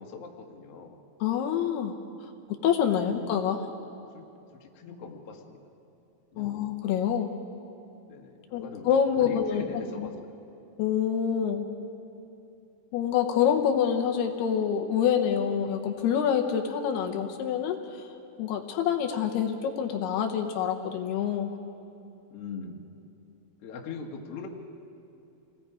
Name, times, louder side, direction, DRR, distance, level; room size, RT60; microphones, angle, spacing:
voice 1, 0.0-1.0 2.9-3.2 4.1-4.3 4.6-5.6 6.3-6.7 8.1-10.1 22.3-22.8 23.6-24.5, left 5 dB, 50° left, 1 dB, 1.9 m, -41 dB
voice 2, 1.2-1.9 2.6-3.7 6.4-7.3 8.5-9.6 10.0-10.1 10.8-11.7 12.9-18.0 18.4-21.5, left 8 dB, 75° left, 5 dB, 2.9 m, -26 dB
27.0 x 19.5 x 4.9 m, 2.8 s
omnidirectional pair, 4.8 m